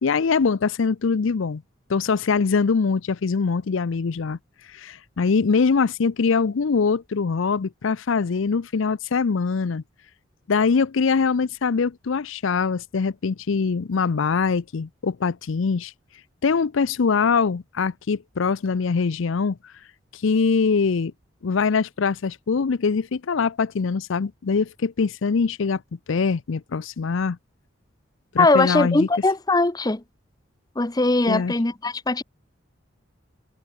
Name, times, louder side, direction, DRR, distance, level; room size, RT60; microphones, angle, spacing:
voice 1, 0.0-1.6 1.9-4.4 4.7-9.8 10.5-15.9 16.4-19.6 20.1-21.1 21.4-25.8 26.1-27.4 28.3-29.1 31.3-31.5, left 5 dB, 70° left, 0.5 m, -23 dB
voice 2, 28.4-30.0 30.8-32.2, left 2 dB, 20° left, 0.7 m, -20 dB
head